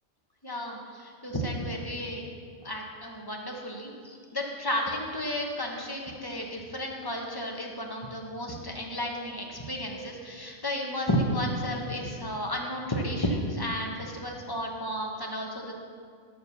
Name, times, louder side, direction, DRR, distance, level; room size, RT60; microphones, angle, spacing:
voice 1, 0.4-2.3 2.6-15.7, equal, 20° left, 0 dB, 1.1 m, -32 dB
11.0 x 4.6 x 6.9 m, 2.1 s
omnidirectional pair, 1.3 m